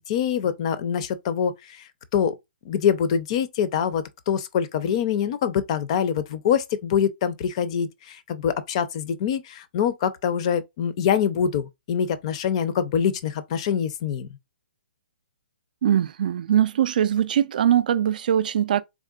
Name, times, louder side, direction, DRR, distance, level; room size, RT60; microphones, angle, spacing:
voice 1, 0.0-1.8 2.1-2.4 2.7-14.3, left 8 dB, 35° left, 0.5 m, -24 dB
voice 2, 15.8-18.8, right 10 dB, 50° right, 0.3 m, -21 dB
3.7 x 3.2 x 2.3 m
hypercardioid pair, 155°, 6 cm